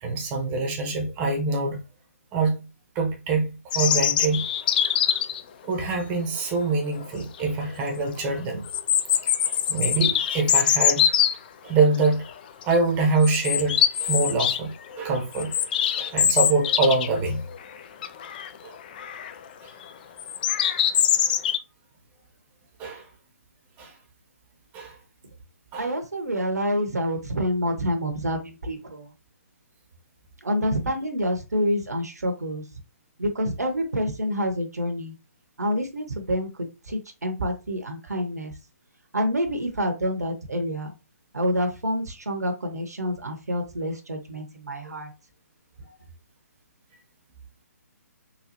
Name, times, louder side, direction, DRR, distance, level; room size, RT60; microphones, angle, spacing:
voice 1, 0.0-1.8 2.3-2.7 2.9-4.5 5.6-8.6 9.5-11.1 11.6-12.2 12.6-15.5 16.0-17.4 18.6-18.7 19.6-19.7 20.6-20.8 22.8-23.1 23.8-23.9 24.7-24.9 25.7-25.9, right 3 dB, 20° right, 0.8 m, -25 dB
sound 1, 3.7-5.4 7.0-7.1 7.5-7.6 8.7-11.3 12.0-12.3 12.6-12.8 13.2-14.6 14.9-17.2 17.5-17.6 18.0-18.5 19.0-19.3 20.2-21.6, left 9 dB, 35° left, 0.3 m, -23 dB
voice 2, 25.8-29.1 30.4-32.6 33.2-35.1 35.6-38.5 39.1-40.9 41.3-45.1, equal, 80° right, 0.9 m, -27 dB
4.0 x 2.3 x 2.9 m
figure-of-eight pair, 140°, 9 cm